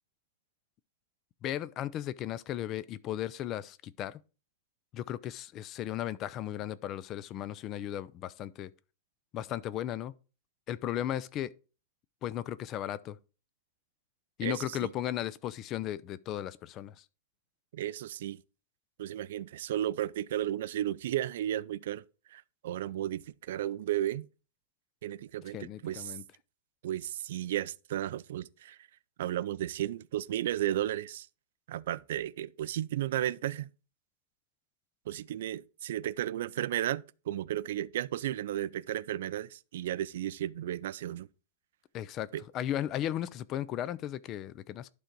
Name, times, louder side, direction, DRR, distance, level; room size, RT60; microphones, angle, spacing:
voice 1, 1.4-4.2 4.9-8.7 9.3-10.1 10.7-11.5 12.2-13.2 14.4-17.0 25.5-26.2 41.9-42.3 42.5-44.9, left 12 dB, 25° left, 0.4 m, -36 dB
voice 2, 14.4-14.9 17.7-18.4 19.0-22.0 22.3-24.3 25.0-26.2 26.8-28.8 29.2-31.3 31.7-33.7 35.1-41.3 42.3-42.4, right 12 dB, 65° right, 0.4 m, -34 dB
11.5 x 3.9 x 4.6 m
supercardioid pair, 170°, 0 cm